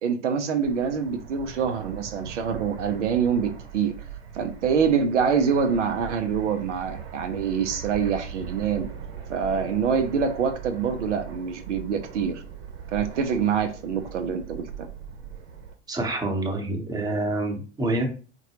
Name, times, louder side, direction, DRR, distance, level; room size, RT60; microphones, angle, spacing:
voice 1, 0.0-3.9 4.3-8.9 9.3-12.4 12.9-14.9, right 6 dB, 75° right, 7 dB, 0.6 m, -25 dB
Fixed-wing aircraft airplane, 0.6-15.7, right 8 dB, 55° right, 0.9 m, -40 dB
voice 2, 15.9-18.1, right 2 dB, 10° right, 1 dB, 0.8 m, -27 dB
3.9 x 2.2 x 2.9 m, 0.37 s
hypercardioid pair, 90°, 36 cm